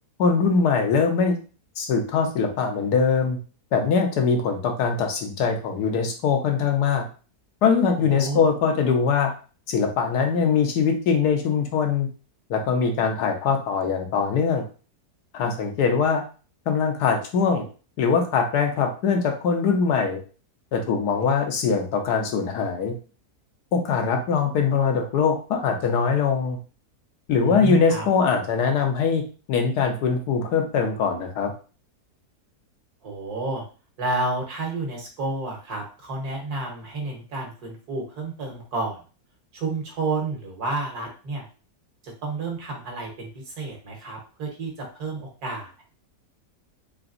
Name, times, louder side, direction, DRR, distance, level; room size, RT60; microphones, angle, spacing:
voice 1, 0.2-1.4 1.8-3.4 3.7-7.1 7.6-9.3 9.7-12.1 12.5-14.6 15.3-16.2 16.7-17.7 18.0-20.2 20.7-22.9 23.7-26.6 27.3-29.2 29.5-31.5, left 5 dB, 80° left, 4 dB, 1.3 m, -22 dB
voice 2, 8.1-8.4 27.4-28.1 33.0-33.6 34.0-39.0 39.5-41.4 42.0-45.8, right 2 dB, 70° right, 1 dB, 1.7 m, -30 dB
3.9 x 3.3 x 2.5 m, 0.36 s
omnidirectional pair, 1.7 m